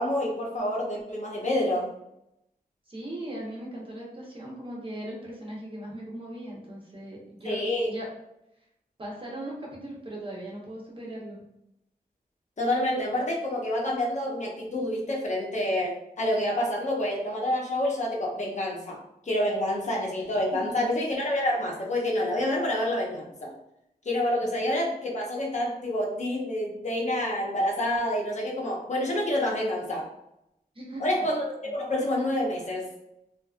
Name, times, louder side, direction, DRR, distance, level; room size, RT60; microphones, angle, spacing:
voice 1, 0.0-1.9 7.4-7.9 12.6-23.5 24.0-30.1 31.0-32.9, left 1 dB, 50° left, -2 dB, 0.7 m, -28 dB
voice 2, 2.9-8.1 9.0-11.4 20.5-20.9 24.4-24.5 30.7-31.3, right 1 dB, 35° right, -3 dB, 0.8 m, -39 dB
2.7 x 2.5 x 2.4 m, 0.82 s
wide cardioid pair, 105°, 15 cm